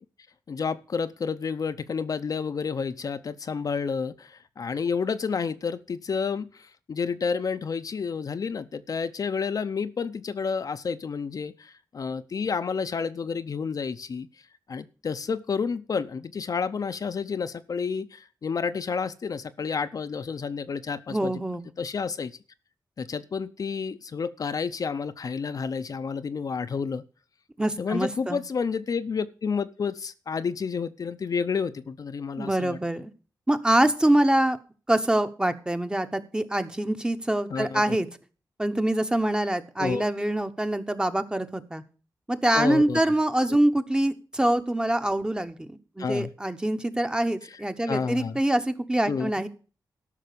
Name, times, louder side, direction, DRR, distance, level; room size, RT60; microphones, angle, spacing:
voice 1, 0.5-14.3 14.7-21.4 21.8-22.4 23.0-27.0 27.8-32.8 37.5-38.0 39.8-40.1 42.5-43.0 46.0-46.3 47.4-47.6 47.9-48.4 49.1-49.3, left 5 dB, 55° left, 10 dB, 0.6 m, -30 dB
voice 2, 21.1-21.7 27.6-28.4 32.4-33.1 33.5-34.6 34.9-38.1 38.6-41.8 42.3-49.5, right 1 dB, 10° right, 9 dB, 0.9 m, -25 dB
13.0 x 5.9 x 6.8 m, 0.38 s
wide cardioid pair, 105°, 7 cm